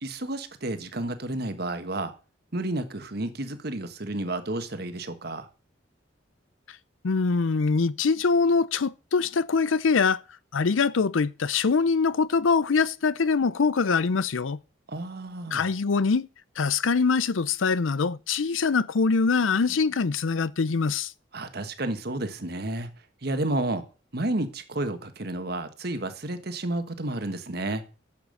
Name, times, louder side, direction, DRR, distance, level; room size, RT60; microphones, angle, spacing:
voice 1, 0.0-2.1 2.5-5.5 14.9-15.7 21.3-22.9 23.2-23.8 24.1-27.8, right 2 dB, 55° right, 1.5 m, -31 dB
voice 2, 7.0-10.2 10.5-14.6 15.5-16.3 16.6-21.1, left 4 dB, 85° left, 0.6 m, -23 dB
10.5 x 7.3 x 6.5 m
head